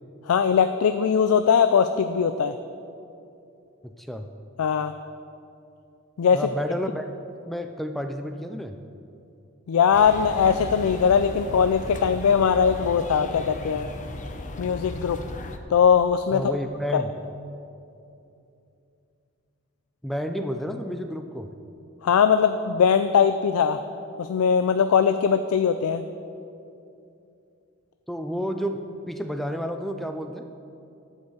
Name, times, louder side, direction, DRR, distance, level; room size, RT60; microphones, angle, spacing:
voice 1, 0.3-2.5 4.6-4.9 6.2-6.4 9.7-13.9 14.6-15.2 15.7-16.4 16.9-17.0 22.0-23.8 24.2-26.0, left 7 dB, 90° left, 10 dB, 0.4 m, -20 dB
voice 2, 3.8-4.3 6.3-7.0 7.5-8.8 16.3-17.1 20.0-21.5 28.1-28.8 29.1-30.4, equal, ahead, 6 dB, 0.3 m, -30 dB
sound 1, 9.9-15.6, left 2 dB, 35° left, 0.6 m, -36 dB
11.5 x 5.5 x 7.2 m, 2.7 s
head